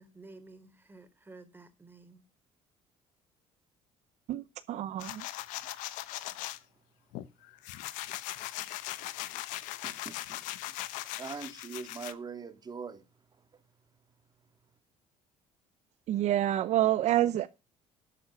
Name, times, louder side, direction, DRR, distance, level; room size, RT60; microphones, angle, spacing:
voice 1, 0.0-2.2, right 3 dB, 15° right, 3.3 m, -52 dB
voice 2, 4.3-5.2 16.1-17.5, right 13 dB, 65° right, 0.8 m, -28 dB
sound 1, 5.0-6.6 7.1-12.1, left 16 dB, 85° left, 1.0 m, -39 dB
voice 3, 9.8-10.4 11.2-13.0, right 5 dB, 30° right, 2.5 m, -42 dB
13.0 x 8.5 x 6.2 m
cardioid pair, 95°, 13 cm